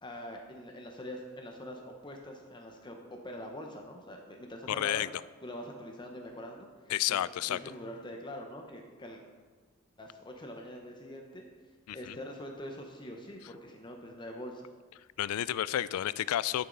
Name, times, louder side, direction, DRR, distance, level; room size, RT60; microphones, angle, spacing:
voice 1, 0.0-5.0 5.4-6.7 7.1-7.2 7.5-9.2 10.0-11.5 11.9-14.7, equal, 20° left, 2 dB, 0.9 m, -44 dB
voice 2, 4.7-5.1 6.9-7.6 11.9-12.2 15.2-16.7, left 12 dB, 85° left, 19 dB, 0.3 m, -31 dB
12.5 x 6.9 x 4.0 m, 1.5 s
head